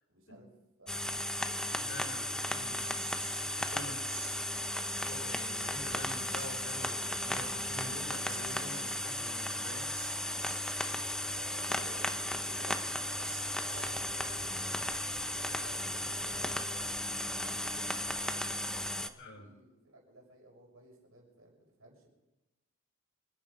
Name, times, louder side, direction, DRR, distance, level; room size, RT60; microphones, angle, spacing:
voice 1, 0.1-0.5 0.8-2.5 3.7-4.6 11.3-14.4 14.9-17.0 17.3-18.6 18.8-22.1, right 1 dB, 75° right, 0 dB, 6.1 m, -56 dB
sound 1, 0.9-19.1, left 1 dB, 5° left, 0.6 m, -35 dB
voice 2, 1.8-3.1 3.6-4.2 5.0-9.9 19.2-19.5, left 1 dB, 55° left, 3 dB, 4.8 m, -47 dB
sound 2, 2.8-3.6 4.0-4.4 4.9-5.8 6.0-6.6 7.2-11.0 11.3-11.4 11.7-11.8 12.1-12.2 12.5-12.6 13.2-14.2, right 8 dB, 40° right, 4.1 m, -51 dB
26.5 x 9.9 x 5.3 m, 1.0 s
head